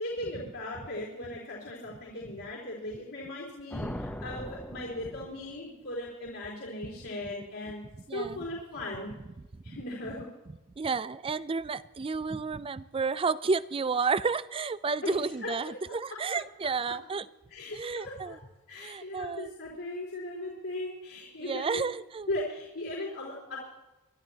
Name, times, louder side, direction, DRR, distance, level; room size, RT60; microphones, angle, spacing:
voice 1, 0.0-9.1 9.6-10.3 15.0-15.9 17.5-18.4 18.7-21.8 22.3-23.6, left 1 dB, 70° left, -5 dB, 4.1 m, -38 dB
sound 1, 3.7-5.7, equal, 5° left, 0.8 m, -39 dB
voice 2, 8.1-8.5 9.7-9.8 10.8-17.3 17.7-18.4 18.7-19.5 21.4-22.3, right 4 dB, 25° right, 16 dB, 0.4 m, -31 dB
25.5 x 12.0 x 2.9 m, 1.0 s
head